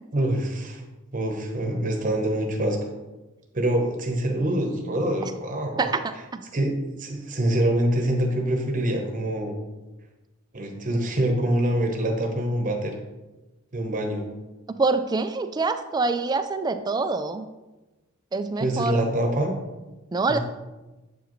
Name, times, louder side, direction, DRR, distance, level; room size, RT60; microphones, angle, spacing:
voice 1, 0.1-0.8 1.1-2.9 3.5-5.9 6.5-9.5 10.5-12.9 13.7-14.2 18.6-19.6 20.3-20.4, right 1 dB, 40° right, 3 dB, 0.9 m, -25 dB
voice 2, 5.8-6.4 14.7-17.5 18.3-19.0 20.1-20.4, right 3 dB, 20° right, 9 dB, 0.3 m, -25 dB
7.8 x 4.8 x 3.1 m, 1.1 s
head